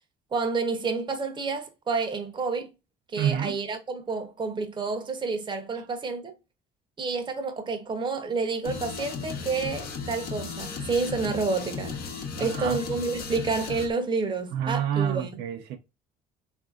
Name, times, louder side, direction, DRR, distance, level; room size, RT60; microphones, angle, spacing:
voice 1, 0.3-2.7 3.1-6.3 7.0-12.0 12.4-15.4, right 4 dB, 30° right, 0.8 m, -29 dB
voice 2, 3.2-3.6 12.4-12.8 14.5-15.8, right 9 dB, 85° right, 0.6 m, -28 dB
sound 1, 8.6-13.9, left 5 dB, 65° left, 0.9 m, -35 dB
3.6 x 2.6 x 2.4 m
cardioid pair, 110°, 17 cm